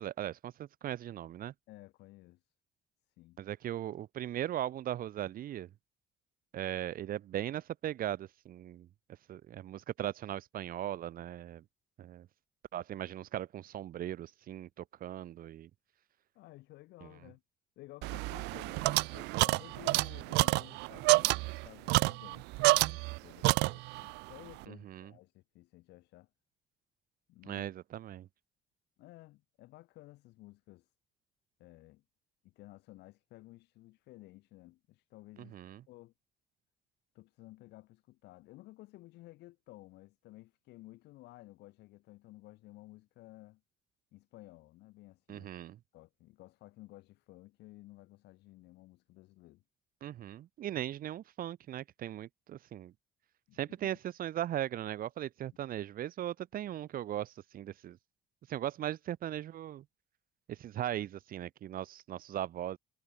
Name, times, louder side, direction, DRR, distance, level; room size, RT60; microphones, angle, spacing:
voice 1, 0.0-1.5 3.4-5.7 6.5-8.9 9.3-11.6 12.0-12.3 12.7-15.7 17.0-17.1 24.7-25.1 27.5-28.3 35.5-35.8 45.3-45.8 50.0-52.9 53.6-58.0 58.5-59.8 60.5-62.8, right 12 dB, 55° right, 1.2 m, -38 dB
voice 2, 1.7-2.4 3.2-3.4 16.3-17.4 17.8-26.3 27.3-27.7 29.0-30.9 31.6-32.0 32.4-35.5 35.9-36.1 37.1-43.6 44.1-45.5 45.9-49.6 53.5-54.0, left 18 dB, 85° left, 7.4 m, -55 dB
sound 1, 18.0-23.2 23.4-24.1, right 23 dB, 90° right, 0.4 m, -28 dB
cardioid pair, 110°, 17 cm